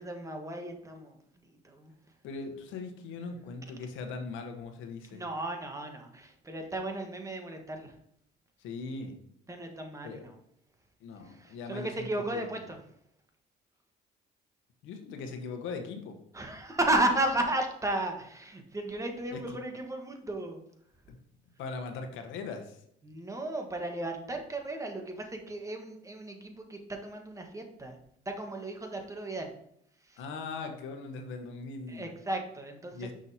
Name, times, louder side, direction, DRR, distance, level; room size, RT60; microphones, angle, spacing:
voice 1, 0.0-1.9 5.1-7.9 9.5-10.3 11.2-12.8 16.3-20.6 23.0-28.0 28.2-29.5 30.1-30.2 31.9-33.1, right 1 dB, 15° right, 3 dB, 1.3 m, -34 dB
voice 2, 2.2-5.2 8.6-9.1 10.0-10.2 11.0-12.4 14.8-16.1 19.3-19.6 21.1-21.2 21.6-22.8 30.2-32.1 32.9-33.1, left 4 dB, 80° left, 5 dB, 1.1 m, -40 dB
6.2 x 5.8 x 2.8 m, 0.73 s
cardioid pair, 90°, 20 cm